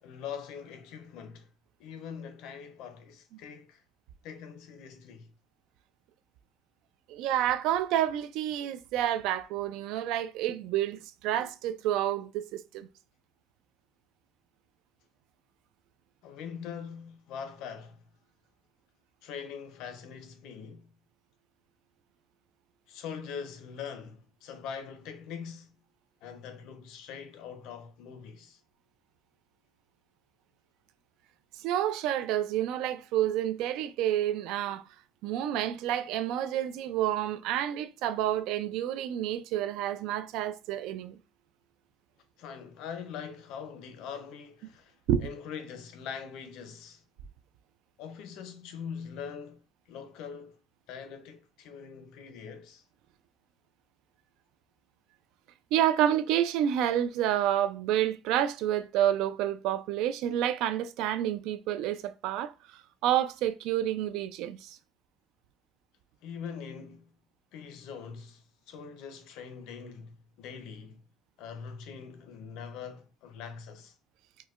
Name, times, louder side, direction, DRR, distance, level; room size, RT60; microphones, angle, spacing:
voice 1, 0.0-1.5 1.8-3.8 4.2-5.3 16.2-18.1 19.2-20.9 22.9-25.7 26.2-28.6 42.4-45.0 45.2-47.0 48.0-49.6 49.9-50.6 50.9-52.8 66.2-67.1 67.5-71.0 71.4-73.9, left 7 dB, 70° left, 0.6 m, -42 dB
voice 2, 7.1-12.9 31.6-34.8 35.2-41.2 45.1-45.3 55.7-62.5 63.0-64.8, right 11 dB, 70° right, 0.3 m, -29 dB
4.4 x 2.1 x 2.4 m
cardioid pair, 175°, 0 cm